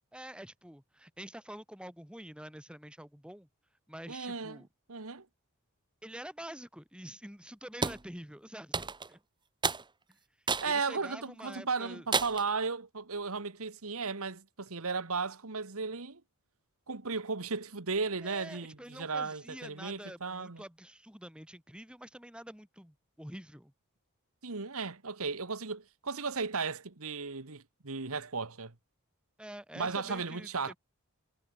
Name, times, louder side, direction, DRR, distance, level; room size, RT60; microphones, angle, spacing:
voice 1, 0.1-3.5 3.9-4.7 6.0-9.2 10.6-12.1 18.2-23.7 29.4-30.8, equal, 5° right, 6.4 m, -47 dB
voice 2, 4.1-4.6 4.9-5.3 10.6-16.2 16.9-20.6 24.4-28.7 29.8-30.7, right 4 dB, 70° right, 1.6 m, -35 dB
sound 1, 7.8-8.0 8.7-9.1 9.6-9.8 10.5-10.7 11.2-11.3 12.1-12.5, right 4 dB, 20° right, 1.4 m, -31 dB
head